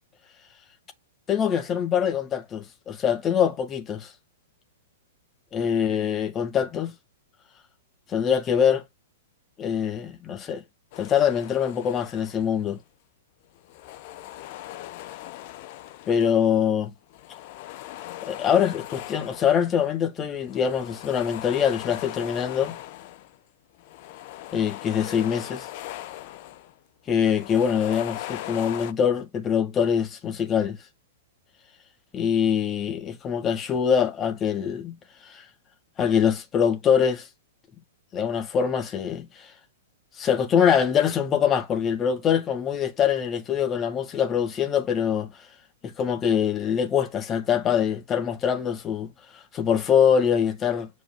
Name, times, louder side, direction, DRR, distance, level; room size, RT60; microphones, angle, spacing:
voice 1, 1.3-4.1 5.5-6.9 8.1-8.8 9.6-10.6 11.0-12.8 16.1-16.9 18.2-22.8 24.5-25.7 27.1-30.8 32.1-34.9 35.2-35.4 36.0-37.3 38.1-39.5 40.2-45.3 45.8-50.9, left 8 dB, 25° left, 1.8 m, -24 dB
sound 1, 10.9-12.8 13.5-16.5 17.1-19.9 20.3-23.4 23.7-26.7 27.1-28.9, left 15 dB, 45° left, 0.8 m, -40 dB
9.3 x 4.7 x 2.3 m
figure-of-eight pair, 105°, 0 cm